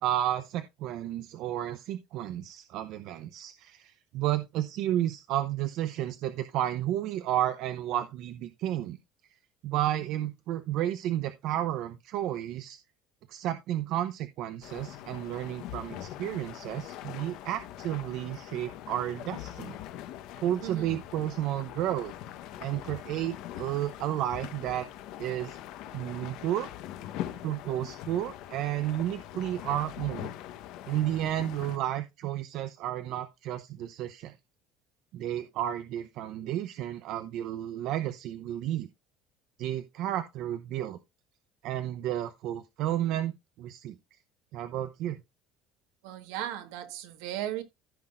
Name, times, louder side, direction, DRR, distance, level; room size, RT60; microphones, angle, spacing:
voice 1, 0.0-9.0 9.6-12.8 13.3-19.8 20.4-22.1 22.6-24.9 25.2-25.6 25.9-26.7 27.4-30.3 30.9-34.3 35.1-38.9 39.6-41.0 41.6-44.0 44.5-45.2, right 12 dB, 50° right, 0.7 m, -32 dB
sound 1, 14.6-31.8, left 12 dB, 60° left, 1.1 m, -42 dB
voice 2, 20.6-21.0 46.0-47.6, right 12 dB, 85° right, 1.5 m, -36 dB
15.0 x 5.8 x 2.5 m
cardioid pair, 175°, 0 cm